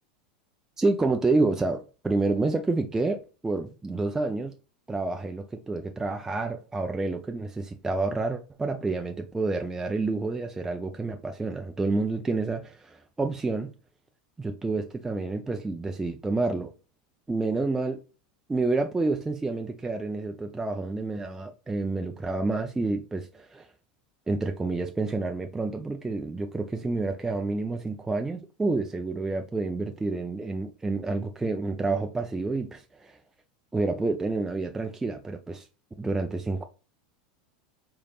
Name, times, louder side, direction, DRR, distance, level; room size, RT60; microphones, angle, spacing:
voice 1, 0.8-4.5 4.9-13.7 14.4-16.7 17.3-18.0 18.5-23.7 24.3-33.2 33.7-35.7 36.0-36.6, right 3 dB, 10° right, 0.4 m, -29 dB
3.9 x 3.3 x 2.3 m
hypercardioid pair, 105°, 4 cm